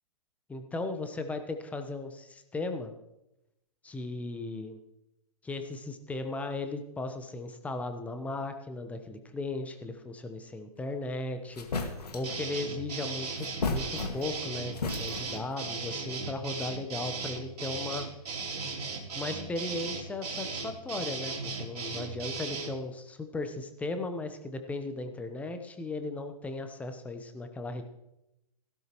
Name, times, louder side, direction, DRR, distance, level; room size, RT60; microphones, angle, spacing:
voice 1, 0.5-2.9 3.8-4.8 5.4-11.7 12.1-18.1 19.1-27.8, left 2 dB, 5° left, 7 dB, 0.9 m, -36 dB
sound 1, 11.1-11.2 11.6-12.4 13.4-14.4 14.7-15.5, left 3 dB, 80° left, 1.9 m, -34 dB
sound 2, 12.2-22.7, right 4 dB, 80° right, 3.3 m, -37 dB
16.5 x 12.0 x 3.0 m, 0.90 s
hypercardioid pair, 130°, 20 cm